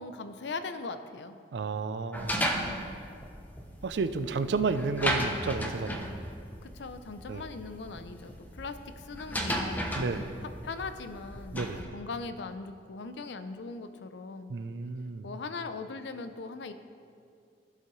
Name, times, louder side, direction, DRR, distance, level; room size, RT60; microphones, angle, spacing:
voice 1, 0.0-1.4 6.6-9.9 10.4-14.6 15.2-16.7, left 4 dB, 85° left, 10 dB, 0.5 m, -40 dB
voice 2, 1.5-2.6 3.8-6.1 7.3-7.5 9.9-10.3 11.5-11.9 14.5-15.3, right 4 dB, 75° right, 12 dB, 0.4 m, -32 dB
sound 1, 2.1-11.8, equal, 10° left, 0.7 m, -35 dB
15.5 x 5.5 x 3.1 m, 2.4 s
head